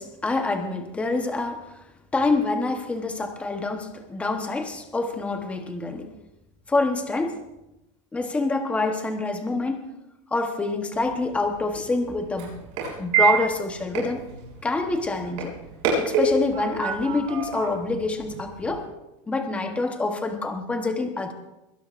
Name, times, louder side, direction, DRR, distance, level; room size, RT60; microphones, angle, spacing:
voice 1, 0.0-1.6 2.1-6.1 6.7-7.4 8.1-9.8 10.3-12.5 13.0-14.3 14.6-15.5 16.0-18.9 19.3-21.3, left 3 dB, 5° left, 6 dB, 1.0 m, -26 dB
sound 1, 10.9-18.8, right 5 dB, 40° right, 6.8 m, -29 dB
23.0 x 17.5 x 2.5 m, 0.92 s
supercardioid pair, 175°, 17 cm